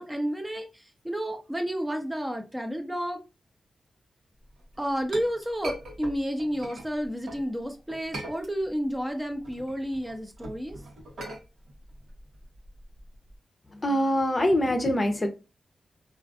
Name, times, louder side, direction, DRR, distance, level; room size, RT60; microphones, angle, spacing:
voice 1, 0.0-3.2 4.8-10.8, equal, 15° right, 0.5 m, -31 dB
Chink clink, 4.6-7.5 7.9-8.9 9.3-13.4, right 1 dB, 85° right, 1.0 m, -41 dB
voice 2, 13.8-15.3, equal, 35° left, 0.6 m, -24 dB
2.4 x 2.4 x 2.4 m
cardioid pair, 65°, 0 cm